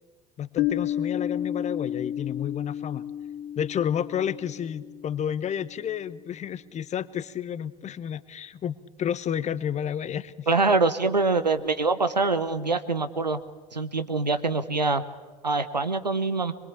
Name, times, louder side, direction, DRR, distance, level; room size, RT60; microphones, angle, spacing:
voice 1, 0.4-3.0 3.6-10.5, left 9 dB, 35° left, 16 dB, 1.0 m, -31 dB
Piano, 0.6-5.9, left 11 dB, 60° left, 3.4 m, -32 dB
voice 2, 10.5-13.4 13.7-15.0 15.4-16.5, right 3 dB, 90° right, 11 dB, 1.0 m, -24 dB
24.5 x 22.0 x 8.5 m, 1.3 s
figure-of-eight pair, 65°, 21 cm